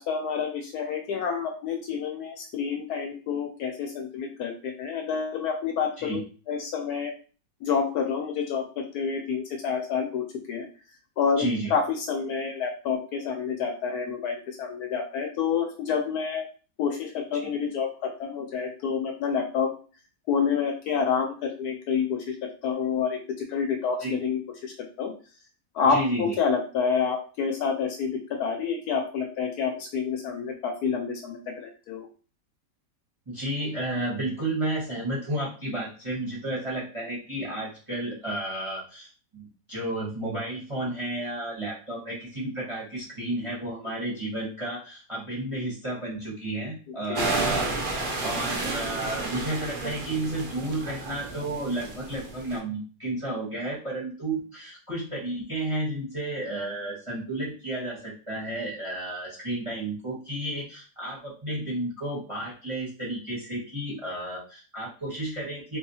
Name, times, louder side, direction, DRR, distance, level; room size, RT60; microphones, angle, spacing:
voice 1, 0.0-7.1 7.6-10.7 11.2-11.4 11.7-16.5 16.8-19.7 20.3-25.1 25.7-32.1 46.9-47.3, left 6 dB, 70° left, 3 dB, 1.0 m, -28 dB
voice 2, 11.4-11.7 17.3-17.5 24.0-24.1 25.9-26.3 33.3-39.1 39.3-65.8, right 1 dB, 25° right, -5 dB, 0.8 m, -32 dB
sound 1, 47.2-52.6, right 2 dB, 65° right, 0.5 m, -31 dB
3.3 x 2.7 x 2.7 m, 0.37 s
omnidirectional pair, 1.9 m